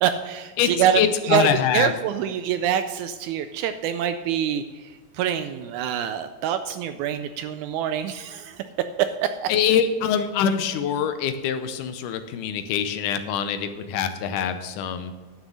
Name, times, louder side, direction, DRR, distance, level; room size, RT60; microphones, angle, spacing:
voice 1, 0.0-8.6 9.0-9.5, right 9 dB, 80° right, 10 dB, 1.8 m, -25 dB
voice 2, 0.6-1.9 9.5-15.1, left 8 dB, 80° left, 9 dB, 2.1 m, -24 dB
11.5 x 6.5 x 6.2 m, 1.4 s
omnidirectional pair, 3.8 m